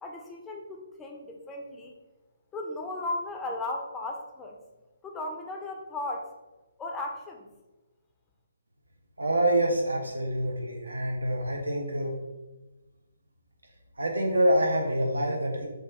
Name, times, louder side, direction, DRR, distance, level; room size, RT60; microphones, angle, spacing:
voice 1, 0.0-1.9 2.5-4.6 5.0-6.3 6.8-7.5, left 2 dB, 10° left, 1 dB, 0.4 m, -36 dB
voice 2, 9.2-12.1 14.0-15.7, right 1 dB, 75° right, 1 dB, 0.5 m, -26 dB
3.5 x 2.3 x 3.2 m, 1.1 s
figure-of-eight pair, 140°, 0 cm